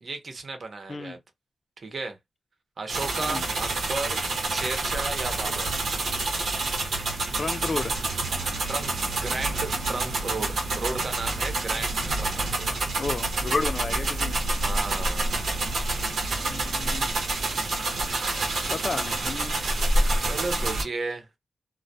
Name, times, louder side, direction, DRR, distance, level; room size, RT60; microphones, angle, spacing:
voice 1, 0.0-1.2 1.8-2.2 2.8-4.2 4.5-5.7 8.7-12.8 14.6-15.2 20.3-21.3, right 3 dB, 60° right, 0.7 m, -34 dB
sound 1, 2.9-20.8, right 2 dB, 85° right, 0.8 m, -27 dB
voice 2, 7.3-7.9 13.0-14.4 16.5-17.1 18.7-19.5, left 3 dB, 50° left, 0.5 m, -32 dB
2.2 x 2.1 x 2.6 m
cardioid pair, 65°, 0 cm